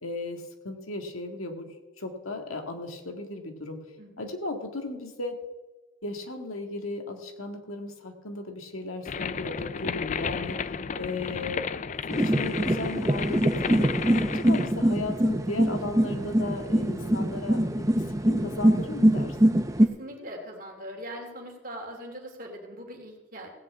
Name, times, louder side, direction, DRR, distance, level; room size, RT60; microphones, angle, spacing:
voice 1, 0.0-3.8 4.2-5.4 6.0-10.6 11.0-11.7 12.1-13.9 14.3-19.4, left 2 dB, 85° left, 5 dB, 1.8 m, -36 dB
voice 2, 4.0-4.3 19.8-23.5, equal, 40° right, 2 dB, 2.6 m, -41 dB
sound 1, 9.0-14.7, left 6 dB, 35° left, 0.3 m, -33 dB
sound 2, 12.1-19.9, right 1 dB, 15° right, 0.7 m, -24 dB
16.5 x 6.0 x 8.4 m, 1.2 s
head